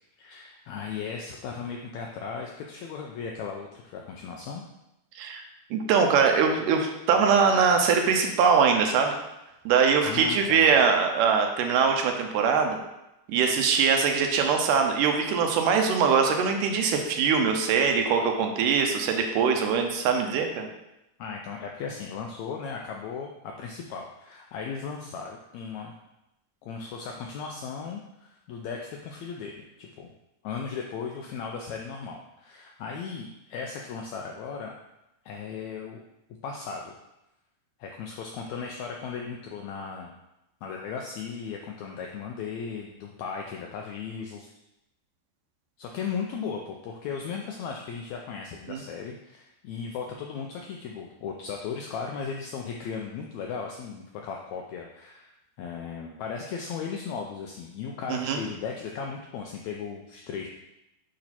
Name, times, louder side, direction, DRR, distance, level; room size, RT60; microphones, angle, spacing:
voice 1, 0.2-4.6 10.0-10.7 21.2-23.3 23.6-25.9 26.6-29.5 29.8-30.1 30.4-34.7 35.2-36.0 36.4-36.9 37.8-40.1 40.6-44.5 45.8-55.3 55.6-60.5, left 6 dB, 85° left, 1 dB, 1.6 m, -36 dB
voice 2, 5.7-9.1 9.7-12.8 13.3-20.7 48.7-48.8 58.1-58.4, right 6 dB, 85° right, 4 dB, 2.2 m, -22 dB
8.7 x 3.1 x 4.2 m, 0.90 s
omnidirectional pair, 3.8 m